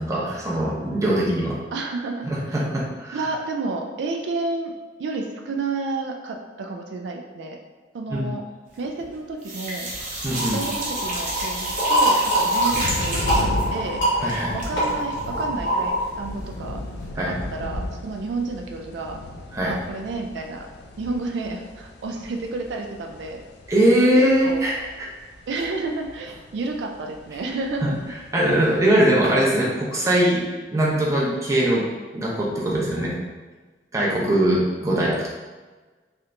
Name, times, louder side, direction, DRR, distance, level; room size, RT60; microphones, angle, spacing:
voice 1, 0.0-1.6 2.2-3.3 8.1-8.3 10.2-10.6 12.6-12.7 14.2-14.5 17.2-17.3 19.5-19.7 23.7-25.1 27.8-27.9 28.3-31.8 32.1-33.1 33.9-35.3, right 1 dB, 20° right, -4 dB, 0.6 m, -21 dB
voice 2, 1.7-2.6 3.1-4.7 5.0-7.6 7.9-8.4 8.8-9.9 10.5-14.0 14.5-16.8 17.1-19.2 19.6-20.7 21.0-23.4 24.2-24.6 25.5-27.9, right 3 dB, 80° right, 2 dB, 0.3 m, -31 dB
sound 1, 8.7-9.1 9.4-16.3 16.6-16.7 17.0-17.1, right 1 dB, 50° right, 0.8 m, -32 dB
sound 2, 9.9-29.0, left 1 dB, 70° left, 0.4 m, -36 dB
sound 3, 10.3-16.0, right 1 dB, 85° left, 1.2 m, -24 dB
3.2 x 2.8 x 2.5 m, 1.3 s
head